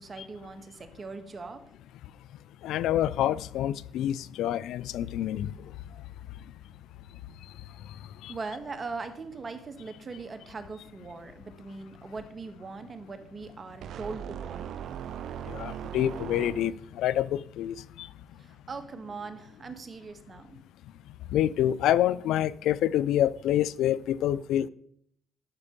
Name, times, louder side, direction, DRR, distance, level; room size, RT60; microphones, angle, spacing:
voice 1, 0.0-1.6 8.3-14.7 18.4-20.6, right 4 dB, 35° right, 1.4 m, -40 dB
voice 2, 2.6-5.5 8.2-8.3 15.5-18.1 21.3-24.7, left 12 dB, 85° left, 0.4 m, -27 dB
sound 1, 13.8-17.0, right 9 dB, 75° right, 0.4 m, -39 dB
12.0 x 4.4 x 7.1 m
cardioid pair, 90°, 0 cm